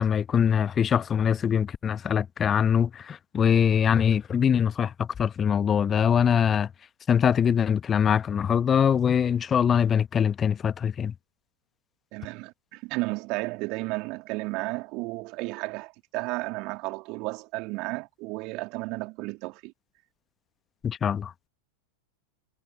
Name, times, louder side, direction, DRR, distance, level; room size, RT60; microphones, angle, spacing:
voice 1, 0.0-6.7 7.1-11.1 20.8-21.5, left 8 dB, 20° left, 1.3 m, -23 dB
voice 2, 12.1-19.7, right 25 dB, 40° right, 3.3 m, -33 dB
figure-of-eight pair, 90°, 0 cm